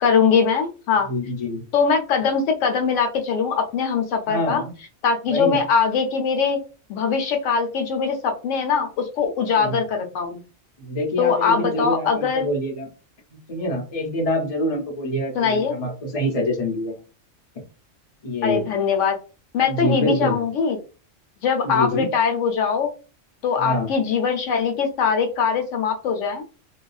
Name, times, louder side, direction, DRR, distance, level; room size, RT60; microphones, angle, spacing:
voice 1, 0.0-1.1 1.7-4.6 5.0-6.6 6.9-10.4 11.2-12.5 15.4-15.7 18.4-19.2 19.5-20.8 21.4-22.9 23.4-26.4, left 6 dB, 80° left, 4 dB, 0.9 m, -21 dB
voice 2, 1.1-1.6 4.3-4.7 5.3-5.6 9.5-9.8 10.8-12.9 13.5-16.9 18.2-18.6 19.6-20.4 21.6-22.0 23.6-23.9, left 1 dB, 35° left, 0 dB, 0.8 m, -25 dB
2.8 x 2.3 x 2.3 m, 0.34 s
omnidirectional pair, 1.3 m